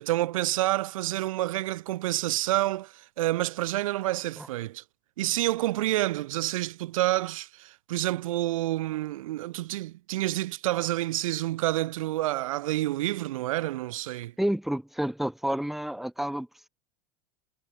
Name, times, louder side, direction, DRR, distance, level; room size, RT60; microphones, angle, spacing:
voice 1, 0.0-4.8 5.2-14.3, right 16 dB, 90° right, 7.9 m, -28 dB
voice 2, 14.4-16.7, equal, ahead, 3.6 m, -30 dB
supercardioid pair, 170°, 17 cm